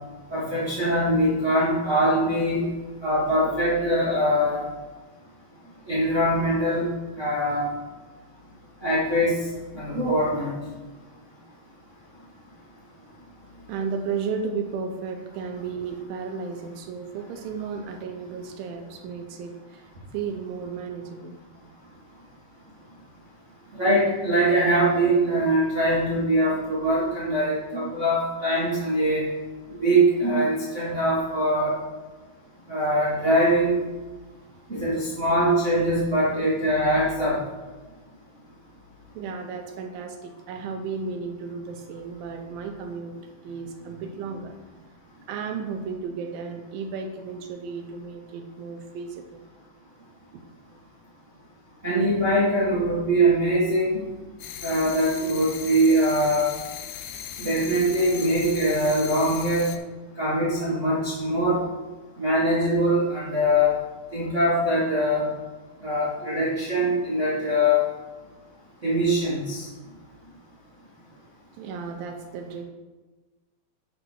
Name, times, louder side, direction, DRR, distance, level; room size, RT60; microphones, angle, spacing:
voice 1, 0.3-2.6 3.0-4.6 5.9-6.9 7.2-7.7 8.8-9.3 9.7-10.5 23.8-29.3 29.7-31.7 32.7-33.7 34.7-37.4 51.8-54.0 54.6-56.5 57.4-59.7 60.2-61.6 62.2-63.8 64.1-65.3 65.8-67.8 68.8-69.6, right 1 dB, 50° right, -8 dB, 0.8 m, -22 dB
voice 2, 13.7-21.4 34.8-34.9 39.2-44.7 45.3-49.4 50.3-50.4 71.6-72.6, right 5 dB, 80° right, 5 dB, 2.4 m, -34 dB
sound 1, 54.4-59.8, left 9 dB, 80° left, 2.2 m, -38 dB
9.2 x 3.9 x 6.2 m, 1.2 s
omnidirectional pair, 4.2 m